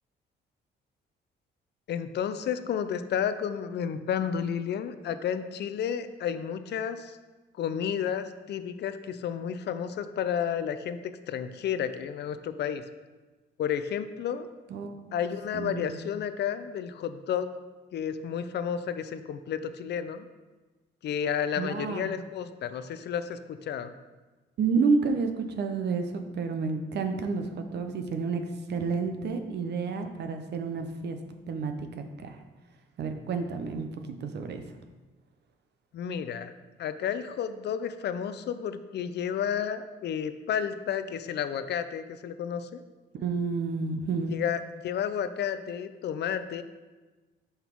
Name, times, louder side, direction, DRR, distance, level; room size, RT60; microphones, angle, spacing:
voice 1, 1.9-7.2 7.6-12.8 13.6-14.5 15.1-17.5 17.9-20.3 21.0-23.9 35.9-36.5 36.8-42.8 44.3-46.6, left 8 dB, 60° left, 11 dB, 0.4 m, -31 dB
voice 2, 15.5-16.0 21.6-22.2 24.6-28.4 28.7-31.2 31.5-32.4 33.0-34.6 43.2-44.4, right 4 dB, 60° right, 7 dB, 0.7 m, -30 dB
5.4 x 4.1 x 4.5 m, 1.2 s
cardioid pair, 90°, 20 cm